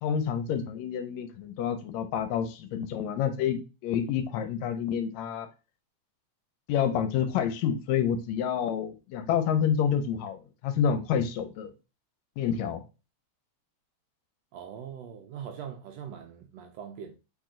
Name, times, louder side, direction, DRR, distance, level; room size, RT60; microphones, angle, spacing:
voice 1, 0.0-5.5 6.7-11.7 12.4-12.8, left 8 dB, 80° left, 1.8 m, -28 dB
voice 2, 14.5-17.1, right 8 dB, 80° right, 1.5 m, -41 dB
4.4 x 3.0 x 3.6 m
omnidirectional pair, 3.3 m